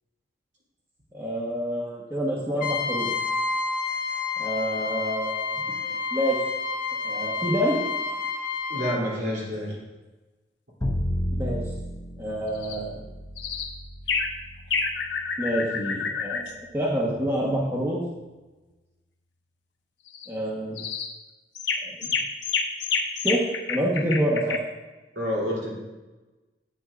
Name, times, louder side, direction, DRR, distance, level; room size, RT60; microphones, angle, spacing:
voice 1, 1.1-3.1 4.4-6.4 7.0-7.8 11.3-11.6 12.2-12.9 15.4-18.0 20.3-20.8 21.8-22.1 23.2-24.6, equal, 15° right, -4 dB, 1.2 m, -27 dB
Trumpet, 2.6-9.0, left 4 dB, 50° left, 1.2 m, -29 dB
voice 2, 8.7-9.8 25.1-25.8, equal, 65° right, -4 dB, 3.1 m, -28 dB
Bowed string instrument, 10.8-16.9, equal, 20° left, 0.8 m, -33 dB
sound 1, 12.6-12.8 13.4-13.7 14.1-14.3 14.7-16.5 20.1-20.3 20.8-21.1 21.5-24.6, left 5 dB, 85° left, 0.9 m, -28 dB
11.5 x 9.0 x 2.5 m, 1.1 s
head